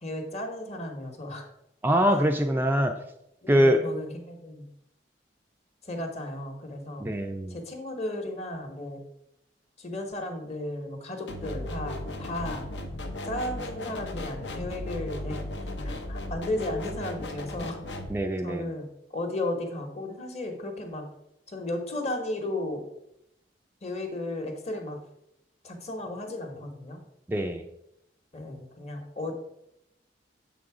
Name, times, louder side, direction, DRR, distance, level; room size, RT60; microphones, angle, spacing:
voice 1, 0.0-1.5 2.8-3.0 3.4-4.7 5.8-7.1 7.5-9.0 9.8-12.7 13.2-15.4 15.8-17.8 18.4-21.1 21.5-22.8 23.8-25.0 25.6-27.0 28.3-29.3, left 1 dB, 40° left, 4 dB, 1.0 m, -34 dB
voice 2, 1.8-2.9 3.5-3.8 7.0-7.5 18.1-18.6 27.3-27.6, equal, 10° right, 4 dB, 0.3 m, -23 dB
sound 1, 11.3-18.1, left 1 dB, 80° left, 0.8 m, -36 dB
6.8 x 3.9 x 4.8 m, 0.81 s
head